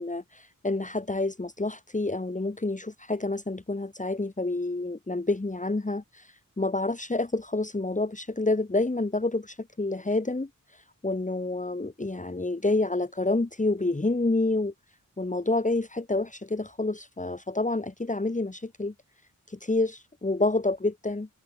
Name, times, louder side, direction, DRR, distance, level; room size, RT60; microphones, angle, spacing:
voice 1, 0.0-14.7 15.2-18.9 19.5-21.3, left 2 dB, 25° left, 1.9 m, -28 dB
wide cardioid pair, 105°, 33 cm